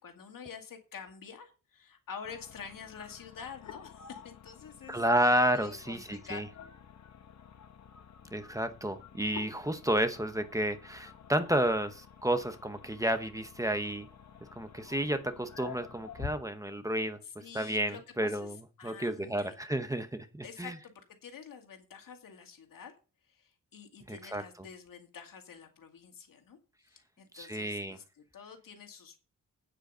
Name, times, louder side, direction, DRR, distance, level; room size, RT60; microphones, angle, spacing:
voice 1, 0.0-5.0 5.5-6.4 17.2-19.5 20.4-22.9 23.2-26.6 26.9-29.2, left 6 dB, 90° left, 4 dB, 2.3 m, -48 dB
sound 1, 2.2-16.3, left 7 dB, 55° left, 1.2 m, -50 dB
voice 2, 4.9-6.4 8.3-14.1 14.6-17.2 17.5-18.5 18.8-20.7 24.1-24.4 27.3-28.0, right 1 dB, 10° right, 8 dB, 0.8 m, -31 dB
9.1 x 7.7 x 5.5 m, 0.34 s
wide cardioid pair, 160°, 32 cm